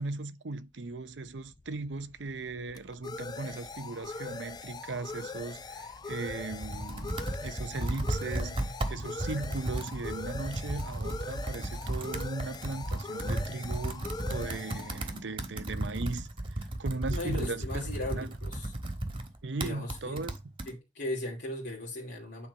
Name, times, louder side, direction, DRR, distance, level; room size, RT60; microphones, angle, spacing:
voice 1, 0.0-7.1 7.4-16.3 16.8-18.3 19.4-20.3, right 3 dB, 85° right, 0.8 m, -37 dB
sound 1, 1.1-16.5, left 3 dB, 25° left, 0.4 m, -42 dB
Computer keyboard, 6.1-20.7, right 1 dB, 30° right, 1.4 m, -35 dB
voice 2, 17.1-18.8 19.6-20.2 20.6-22.5, left 1 dB, 70° left, 2.6 m, -37 dB
8.9 x 4.2 x 5.4 m
head